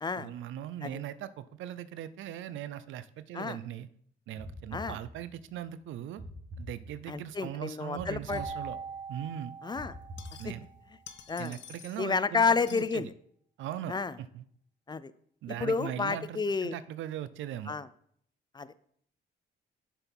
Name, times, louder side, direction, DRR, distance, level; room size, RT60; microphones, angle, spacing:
voice 1, 0.2-3.9 4.3-6.2 6.6-8.8 9.1-9.5 10.4-10.7 11.4-13.1 13.6-14.4 15.4-17.7, right 11 dB, 80° right, 16 dB, 0.5 m, -39 dB
sound 1, 4.4-5.5 6.2-7.3 8.0-9.1 9.7-10.9, equal, 55° right, 1.5 m, -45 dB
voice 2, 7.1-8.4 9.6-9.9 10.4-10.5 11.3-11.6 12.0-13.1 13.9-14.1 14.9-15.1 15.6-16.8 17.7-17.9 18.5-18.7, left 4 dB, 20° left, 16 dB, 0.3 m, -30 dB
sound 2, 8.2-9.1 9.9-10.7 11.0-12.1 12.5-12.9, left 9 dB, 65° left, 0.7 m, -51 dB
Keyboard (musical), 8.3-10.9, right 5 dB, 20° right, 0.8 m, -42 dB
7.0 x 4.5 x 5.3 m, 0.65 s
cardioid pair, 90°, 20 cm